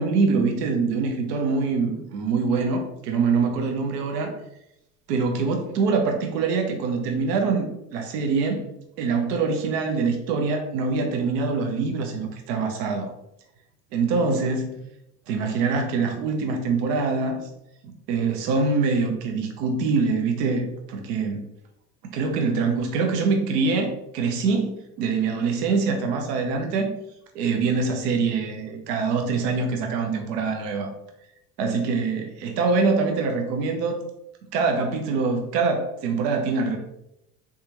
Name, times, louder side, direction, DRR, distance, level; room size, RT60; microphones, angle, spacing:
voice 1, 0.0-4.3 5.1-8.6 9.0-13.1 13.9-14.8 15.3-17.5 17.8-21.5 22.1-24.7 25.0-26.9 27.3-30.9 31.6-34.0 34.5-36.8, right 4 dB, 70° right, 4 dB, 0.8 m, -24 dB
3.5 x 3.5 x 2.9 m, 0.84 s
hypercardioid pair, 70°, 49 cm